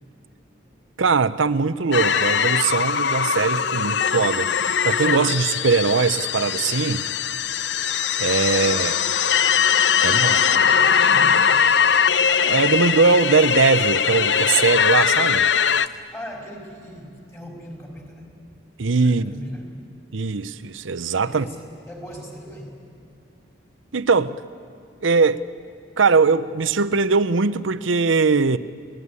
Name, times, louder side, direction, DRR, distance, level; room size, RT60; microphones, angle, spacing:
voice 1, 1.0-4.5 4.8-7.0 8.2-8.9 10.0-10.4 12.5-15.5 18.8-19.3 20.1-21.5 23.9-24.4 25.0-25.4 26.0-28.6, right 4 dB, 85° right, 0.8 m, -20 dB
sound 1, 1.9-15.9, left 7 dB, 65° left, 0.6 m, -20 dB
voice 2, 8.5-9.0 10.0-11.4 15.8-18.4 18.8-19.7 21.2-22.8, equal, 15° left, 4.6 m, -39 dB
29.5 x 18.5 x 9.7 m
head